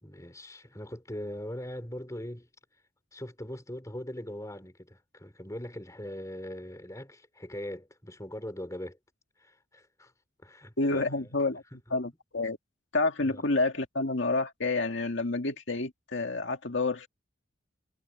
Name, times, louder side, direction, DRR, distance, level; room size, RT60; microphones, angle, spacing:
voice 1, 0.0-2.5 3.1-9.0 9.4-10.1 10.4-11.3 13.2-13.4, left 1 dB, 15° left, 3.5 m, -41 dB
voice 2, 10.8-11.6 11.9-12.6 12.9-17.1, left 3 dB, 70° left, 2.1 m, -29 dB
head